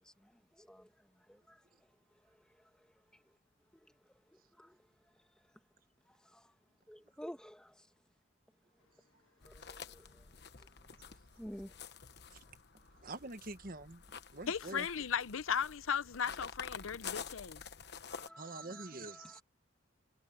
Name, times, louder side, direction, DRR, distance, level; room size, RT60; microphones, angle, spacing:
voice 1, 0.2-0.9 1.3-1.6 3.8-3.9 4.6-4.8 6.1-6.5 6.9-7.9 9.4-10.3 11.4-11.7 18.1-19.4, equal, 5° left, 1.9 m, -51 dB
sound 1, 9.4-18.3, left 6 dB, 55° left, 1.1 m, -49 dB
voice 2, 13.0-14.0 14.3-14.9 18.4-19.4, right 2 dB, 45° right, 1.5 m, -45 dB
voice 3, 14.5-17.6, left 7 dB, 85° left, 0.7 m, -36 dB
head